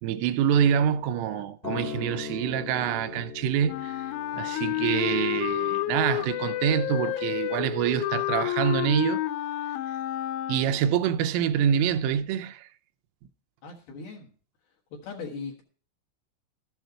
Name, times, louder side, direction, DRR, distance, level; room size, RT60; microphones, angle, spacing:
voice 1, 0.0-4.1 4.3-9.2 10.5-12.7, right 9 dB, 85° right, 3.2 m, -26 dB
Acoustic guitar, 1.6-5.9 6.8-6.9, left 6 dB, 20° left, 1.4 m, -39 dB
Wind instrument woodwind instrument, 3.7-11.0, left 14 dB, 80° left, 2.9 m, -30 dB
voice 2, 13.6-14.3 14.9-15.6, left 4 dB, 65° left, 2.8 m, -39 dB
13.5 x 8.0 x 4.5 m
omnidirectional pair, 5.9 m